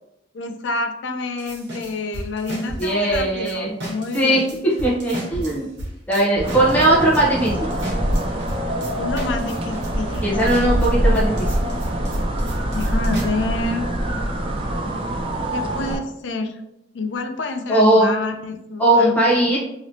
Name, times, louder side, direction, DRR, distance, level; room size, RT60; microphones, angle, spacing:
voice 1, 0.3-4.5 9.0-10.4 12.7-13.9 15.5-16.6 16.9-19.1, left 3 dB, 75° left, 6 dB, 0.4 m, -28 dB
sound 1, 1.4-3.5 3.8-13.2, right 1 dB, 70° right, 1.2 m, -33 dB
voice 2, 2.8-3.7 4.1-5.7 6.1-7.7 10.2-11.6 17.7-18.1 18.8-19.6, right 1 dB, 10° left, -6 dB, 0.9 m, -18 dB
sound 2, 6.4-16.0, right 1 dB, 30° right, 0.4 m, -24 dB
3.0 x 2.9 x 2.7 m, 0.82 s
head